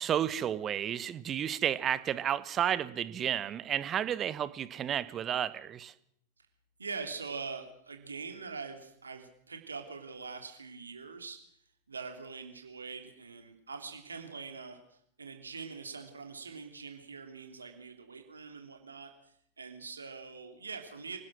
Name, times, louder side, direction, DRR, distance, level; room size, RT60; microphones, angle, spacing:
voice 1, 0.0-5.9, right 9 dB, 25° right, 16 dB, 1.3 m, -32 dB
voice 2, 6.8-11.4 11.9-14.8 15.2-21.2, right 5 dB, 75° right, 5 dB, 3.1 m, -43 dB
26.5 x 19.0 x 6.4 m, 0.71 s
figure-of-eight pair, 90°, 0 cm